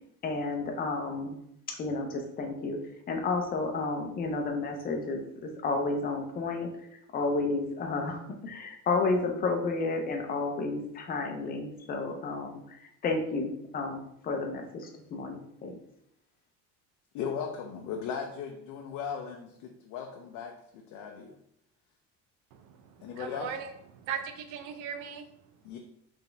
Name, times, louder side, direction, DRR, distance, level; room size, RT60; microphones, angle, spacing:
voice 1, 0.2-1.4 1.7-2.8 3.1-6.7 7.1-12.8 13.0-15.7, left 3 dB, 30° left, 3 dB, 0.6 m, -31 dB
voice 2, 17.1-21.4 23.0-23.5 25.6-25.8, left 7 dB, 65° left, 2 dB, 0.6 m, -37 dB
voice 3, 22.5-25.6, right 7 dB, 70° right, 8 dB, 0.7 m, -39 dB
4.2 x 3.5 x 3.3 m, 0.75 s
cardioid pair, 165°, 32 cm